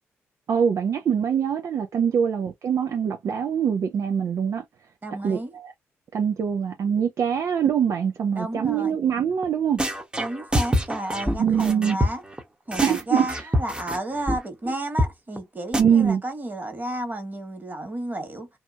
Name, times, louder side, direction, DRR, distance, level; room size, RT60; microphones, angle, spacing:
voice 1, 0.5-4.6 5.2-5.7 6.1-9.8 11.4-12.0 12.8-13.5 15.8-16.2, right 7 dB, 65° right, 0.6 m, -23 dB
voice 2, 5.0-5.5 8.3-9.0 10.2-12.2 12.7-18.5, right 1 dB, 35° right, 1.7 m, -32 dB
sound 1, 9.4-9.5 9.8-12.4 12.7-14.0 14.3-14.4 14.7-14.8 15.0-15.1 15.4-15.5 15.7-15.8, equal, 15° right, 1.0 m, -25 dB
2.8 x 2.3 x 2.5 m
supercardioid pair, 45°, 6 cm